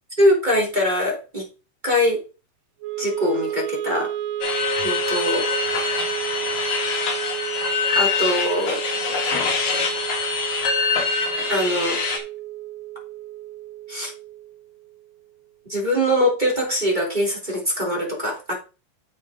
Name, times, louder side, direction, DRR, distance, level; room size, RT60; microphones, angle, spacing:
voice 1, 0.2-1.4 1.8-2.2 3.0-4.1 4.8-5.5 7.9-8.8 9.2-9.3 11.5-12.0 13.9-14.1 15.7-18.5, equal, 10° right, -2 dB, 2.6 m, -22 dB
Wind instrument woodwind instrument, 2.8-15.0, right 13 dB, 75° right, 3.4 m, -32 dB
sound 1, 4.4-12.2, left 5 dB, 60° left, 3.0 m, -24 dB
8.5 x 8.2 x 3.6 m, 0.32 s
omnidirectional pair, 5.0 m